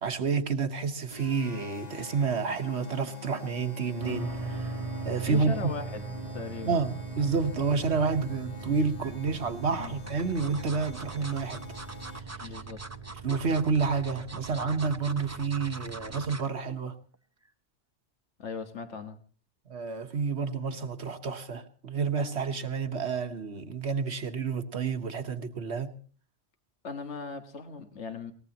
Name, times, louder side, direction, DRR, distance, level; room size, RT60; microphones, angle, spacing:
voice 1, 0.0-4.7 5.0-5.7 6.6-11.6 13.2-16.9 19.7-25.9, right 5 dB, 70° right, 1.5 m, -29 dB
sound 1, 1.1-12.5, left 4 dB, 35° left, 1.3 m, -47 dB
sound 2, 4.0-16.3, right 4 dB, 30° right, 1.1 m, -40 dB
voice 2, 5.3-6.0 6.3-6.8 9.8-9.9 12.4-12.8 18.4-19.2 26.8-28.3, left 5 dB, 80° left, 1.8 m, -38 dB
sound 3, 8.6-9.1 9.8-16.5 16.9-17.2 17.5-17.6, right 2 dB, 15° right, 0.6 m, -44 dB
22.5 x 19.0 x 2.9 m
omnidirectional pair, 1.2 m